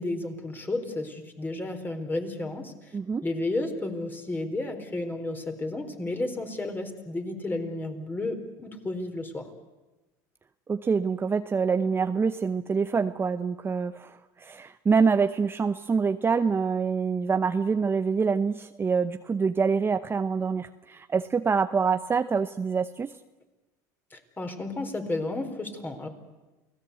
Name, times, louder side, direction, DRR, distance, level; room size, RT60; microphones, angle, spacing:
voice 1, 0.0-2.7 3.2-9.4 24.1-26.1, left 2 dB, 20° left, 5 dB, 4.2 m, -32 dB
voice 2, 2.9-3.3 10.7-23.1, right 5 dB, 25° right, 10 dB, 0.8 m, -26 dB
28.5 x 18.0 x 8.2 m, 1.1 s
supercardioid pair, 90°, 10 cm